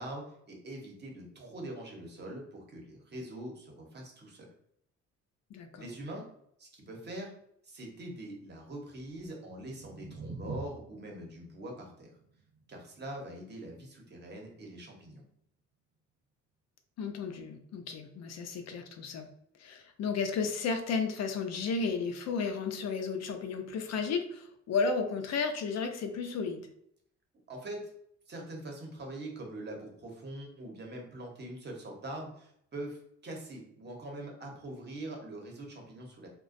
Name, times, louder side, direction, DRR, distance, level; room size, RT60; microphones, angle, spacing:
voice 1, 0.0-4.5 5.8-6.2 6.6-7.3 7.6-12.1 12.7-15.2 27.5-27.8 28.3-36.3, right 1 dB, 35° right, 1 dB, 0.8 m, -43 dB
voice 2, 5.5-5.8 17.0-19.3 19.6-26.6, left 5 dB, 60° left, 6 dB, 0.5 m, -33 dB
sound 1, 9.3-15.4, right 4 dB, 55° right, 0.5 m, -48 dB
2.4 x 2.2 x 2.5 m, 0.70 s
cardioid pair, 90°, 30 cm